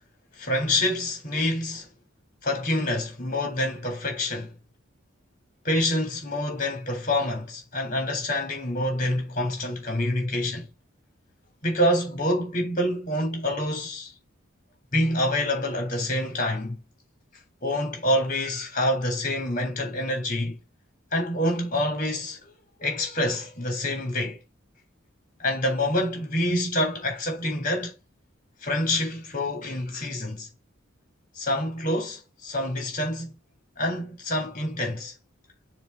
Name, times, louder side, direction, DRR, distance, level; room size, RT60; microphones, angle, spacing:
voice 1, 0.4-1.9 2.4-4.5 5.6-10.7 11.6-14.1 14.9-16.8 17.6-20.6 21.1-22.5 22.8-24.4 25.4-27.9 28.6-30.5 31.4-33.3 33.8-35.1, left 1 dB, 40° left, 3.8 m, -27 dB
7.2 x 3.9 x 4.7 m
head